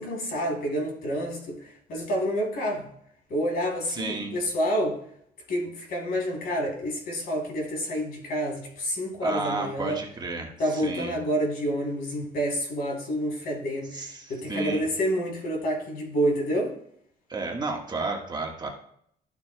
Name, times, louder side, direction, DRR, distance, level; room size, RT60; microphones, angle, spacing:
voice 1, 0.0-2.8 3.3-5.0 5.5-10.0 10.6-16.7, equal, 65° left, 3.1 m, -28 dB
voice 2, 3.9-4.4 9.2-11.1 13.9-14.9 17.3-18.7, right 3 dB, 25° right, 1.4 m, -32 dB
12.0 x 7.0 x 2.2 m
cardioid pair, 110°, 17 cm